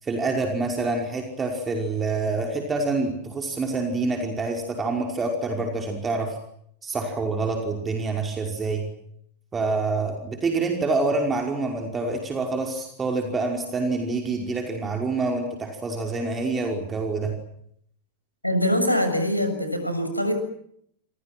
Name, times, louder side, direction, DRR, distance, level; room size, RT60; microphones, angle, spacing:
voice 1, 0.0-6.4 6.8-8.8 9.5-17.3, right 3 dB, 20° right, 3 dB, 5.3 m, -26 dB
voice 2, 18.4-20.3, left 1 dB, 90° left, 7 dB, 7.2 m, -23 dB
29.5 x 28.5 x 6.2 m, 0.70 s
figure-of-eight pair, 90°, 0 cm